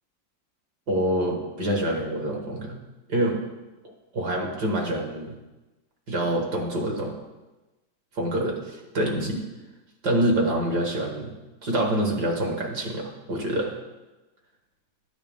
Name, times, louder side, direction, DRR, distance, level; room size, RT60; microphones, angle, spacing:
voice 1, 0.9-2.8 3.1-3.4 4.1-5.3 6.1-7.1 8.2-9.4 10.0-11.3 11.6-13.7, right 1 dB, 60° right, 1 dB, 2.2 m, -26 dB
12.0 x 9.0 x 3.6 m, 1.1 s
omnidirectional pair, 2.1 m